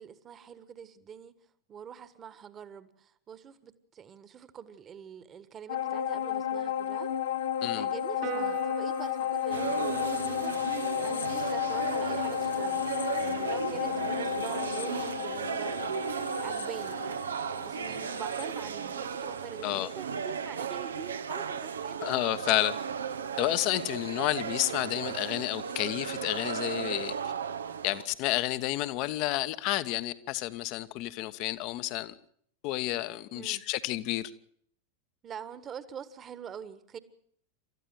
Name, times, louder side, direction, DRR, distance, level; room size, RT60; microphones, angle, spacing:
voice 1, 0.0-1.3 1.7-7.1 7.6-17.3 17.6-22.1 33.3-33.6 35.2-37.0, right 8 dB, 25° right, 1.6 m, -45 dB
sound 1, 5.7-19.4 19.8-19.9, left 10 dB, 60° left, 1.0 m, -33 dB
Piano, 8.2-14.9, right 10 dB, 45° right, 1.9 m, -45 dB
sound 2, 9.5-28.1, right 7 dB, 70° right, 0.9 m, -35 dB
voice 2, 22.0-22.7 23.4-27.1 27.8-32.1 32.6-34.3, left 17 dB, 45° left, 1.2 m, -30 dB
28.5 x 14.0 x 7.7 m
figure-of-eight pair, 90°, 0 cm